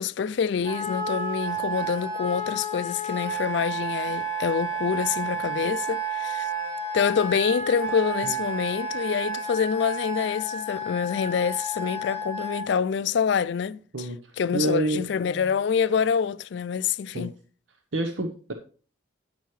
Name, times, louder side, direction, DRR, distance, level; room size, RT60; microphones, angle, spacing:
voice 1, 0.0-6.5 6.9-14.1 14.4-17.4, left 7 dB, 65° left, 0.3 m, -26 dB
Wind instrument woodwind instrument, 0.6-12.7, right 2 dB, 55° right, 2.7 m, -31 dB
voice 2, 14.5-15.0 17.1-17.3 17.9-18.5, right 2 dB, 80° right, 0.9 m, -27 dB
9.1 x 9.0 x 3.1 m
head